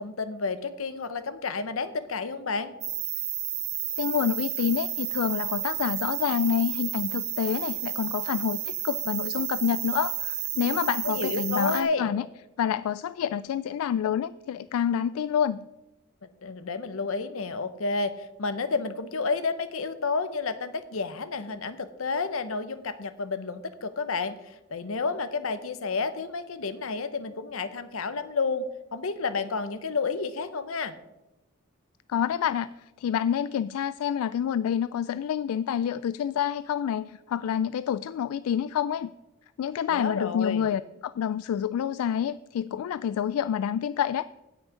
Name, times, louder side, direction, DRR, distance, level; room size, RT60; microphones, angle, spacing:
voice 1, 0.0-2.7 11.0-12.1 16.4-28.7 28.9-30.9 39.9-40.7, left 4 dB, 70° left, 12 dB, 0.8 m, -30 dB
sound 1, 2.8-11.8, right 12 dB, 50° right, 1.5 m, -32 dB
voice 2, 4.0-12.3 12.6-15.7 32.1-39.1 39.6-44.3, left 9 dB, 90° left, 16 dB, 0.3 m, -28 dB
16.5 x 6.2 x 5.0 m, 1.0 s
head